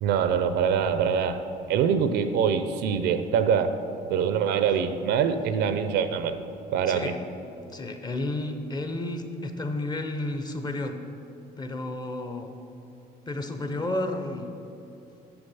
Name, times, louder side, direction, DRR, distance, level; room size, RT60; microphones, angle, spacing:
voice 1, 0.0-3.8 4.1-6.4 6.7-7.1, right 7 dB, 85° right, 10 dB, 0.6 m, -24 dB
voice 2, 6.9-7.2 7.7-11.0 11.6-12.6 13.3-14.6, left 2 dB, 25° left, 6 dB, 0.7 m, -31 dB
6.9 x 6.9 x 5.5 m, 2.8 s
cardioid pair, 110°, 17 cm